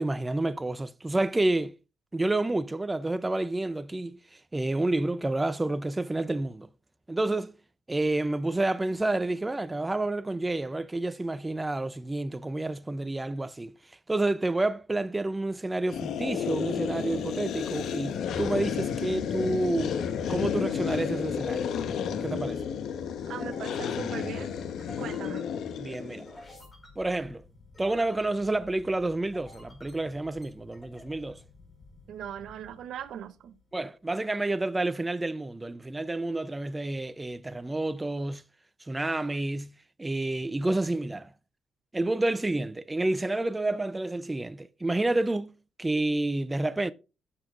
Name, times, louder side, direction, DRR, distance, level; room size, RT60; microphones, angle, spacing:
voice 1, 0.0-1.7 2.1-4.2 4.5-6.7 7.1-7.5 7.9-13.7 14.1-19.9 20.3-21.7 22.2-22.6 25.8-26.2 27.0-27.4 27.8-31.4 33.7-38.4 38.9-39.7 40.0-41.3 41.9-45.5 45.8-46.9, right 2 dB, 15° right, 0.5 m, -29 dB
sound 1, 15.9-26.4, left 7 dB, 75° left, 1.0 m, -32 dB
sound 2, 23.3-33.7, left 2 dB, 20° left, 4.8 m, -53 dB
voice 2, 23.3-24.5 25.0-25.4 32.1-33.6, right 10 dB, 70° right, 0.8 m, -39 dB
15.0 x 7.1 x 2.5 m
cardioid pair, 90°, 0 cm